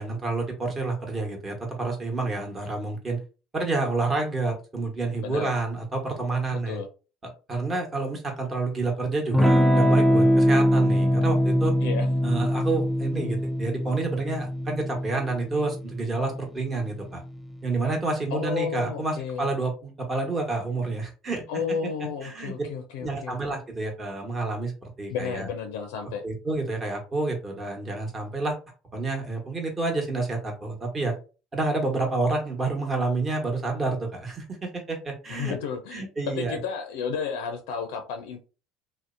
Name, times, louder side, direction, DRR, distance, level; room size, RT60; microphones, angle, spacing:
voice 1, 0.0-3.2 3.5-6.8 7.2-11.7 12.2-17.2 17.6-21.4 22.2-22.5 23.0-25.5 26.2-28.6 28.9-31.1 31.5-35.5 35.9-36.6, right 3 dB, 25° right, 1.0 m, -29 dB
voice 2, 6.5-6.9 11.8-12.1 18.3-19.5 21.5-23.4 25.1-26.2 35.3-38.4, left 6 dB, 75° left, 0.4 m, -32 dB
Electric guitar / Strum, 9.3-17.6, equal, 5° right, 0.4 m, -23 dB
2.6 x 2.0 x 2.4 m
supercardioid pair, 85°, 0 cm